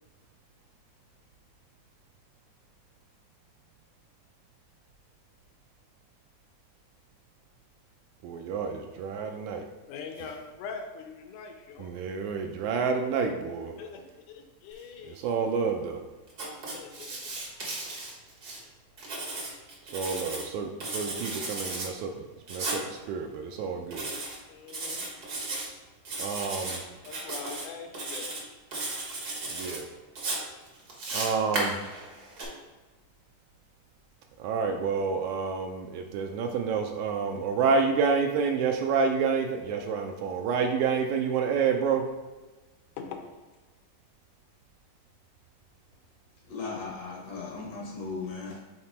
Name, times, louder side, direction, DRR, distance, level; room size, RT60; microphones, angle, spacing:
voice 1, 8.2-9.6 11.8-13.7 15.1-16.0 19.9-22.1 22.5-24.1 26.2-26.8 29.5-29.9 31.1-31.8 34.4-42.0, right 5 dB, 80° right, 4 dB, 1.8 m, -28 dB
voice 2, 9.9-12.0 13.8-15.3 16.7-17.2 24.5-25.1 27.0-28.3 43.0-43.2, left 5 dB, 85° left, 4 dB, 2.2 m, -42 dB
Writing, 16.3-18.6 19.0-20.5 20.8-21.9 22.5-22.8 23.9-24.4 24.7-25.7 26.0-26.8 27.0-27.6 27.9-28.4 28.7-29.8 30.2-32.4, right 2 dB, 60° right, 1.0 m, -35 dB
voice 3, 46.5-48.6, left 4 dB, 65° left, -2 dB, 2.0 m, -37 dB
5.9 x 3.8 x 4.3 m, 1.2 s
omnidirectional pair, 3.6 m